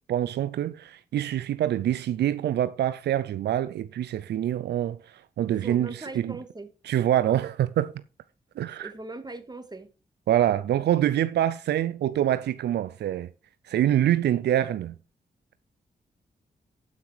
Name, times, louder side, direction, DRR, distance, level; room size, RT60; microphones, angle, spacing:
voice 1, 0.1-5.9 6.2-6.3 6.9-7.9 8.6-8.9 10.3-13.3 13.7-15.0, right 11 dB, 80° right, 0.5 m, -25 dB
voice 2, 5.5-6.7 8.8-9.9, right 2 dB, 25° right, 2.1 m, -40 dB
12.5 x 5.8 x 4.7 m
supercardioid pair, 40°, 17 cm